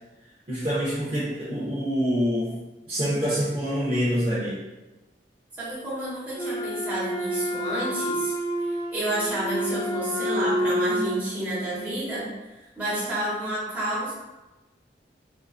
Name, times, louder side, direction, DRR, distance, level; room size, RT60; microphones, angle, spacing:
voice 1, 0.5-2.6 2.9-4.6, equal, 30° right, -10 dB, 0.7 m, -26 dB
voice 2, 5.6-8.3 8.6-12.3 12.8-14.1, right 1 dB, 10° right, -10 dB, 1.3 m, -30 dB
Wind instrument woodwind instrument, 6.3-11.3, equal, 15° left, 0.5 m, -28 dB
3.7 x 2.5 x 2.4 m, 1.1 s
head